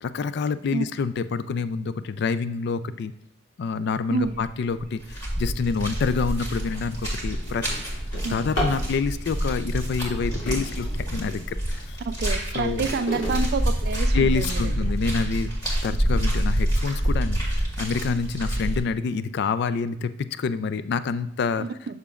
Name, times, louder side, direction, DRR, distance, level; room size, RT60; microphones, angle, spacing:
voice 1, 0.0-3.1 3.6-7.7 8.3-12.0 12.5-12.9 14.1-15.5 15.8-21.7, left 5 dB, 60° left, 13 dB, 0.3 m, -27 dB
sound 1, 4.2-4.5 4.8-18.8, right 1 dB, 20° left, 2.1 m, -27 dB
Drawer open or close, 7.0-8.9 9.9-11.5 12.1-14.5 15.1-15.2 15.7-15.8 16.2-16.6, equal, 90° left, 2.2 m, -35 dB
voice 2, 8.2-8.6 12.1-14.7 16.0-16.1 21.6-22.0, right 4 dB, 55° right, 12 dB, 0.4 m, -29 dB
6.9 x 6.6 x 2.4 m, 0.78 s
head